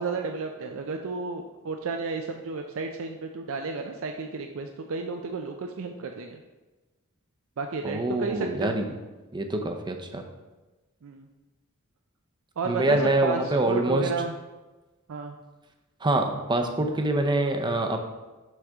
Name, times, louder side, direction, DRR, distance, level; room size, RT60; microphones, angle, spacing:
voice 1, 0.0-6.4 7.6-8.8 11.0-11.3 12.6-14.3 15.1-15.4, right 4 dB, 65° right, 4 dB, 0.5 m, -32 dB
voice 2, 7.8-8.9 9.3-10.2 12.6-14.1 16.0-18.0, right 2 dB, 20° right, 4 dB, 0.6 m, -25 dB
6.3 x 6.3 x 3.5 m, 1.2 s
head